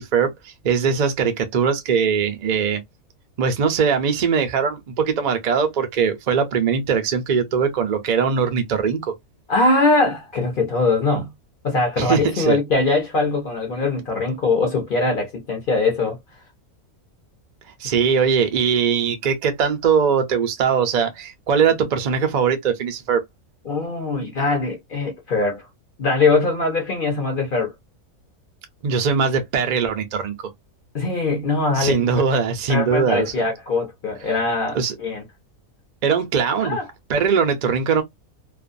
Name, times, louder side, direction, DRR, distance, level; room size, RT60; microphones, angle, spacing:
voice 1, 0.0-2.8 3.4-9.1 12.0-12.6 17.8-23.2 28.8-30.3 31.8-33.4 34.7-34.9 36.0-36.8 37.1-38.0, right 6 dB, 50° right, 0.5 m, -21 dB
voice 2, 9.5-11.3 11.6-16.2 23.7-25.6 26.0-27.7 30.9-32.2 32.7-35.2 36.6-36.9, left 3 dB, 50° left, 0.7 m, -22 dB
2.5 x 2.2 x 2.5 m
omnidirectional pair, 1.5 m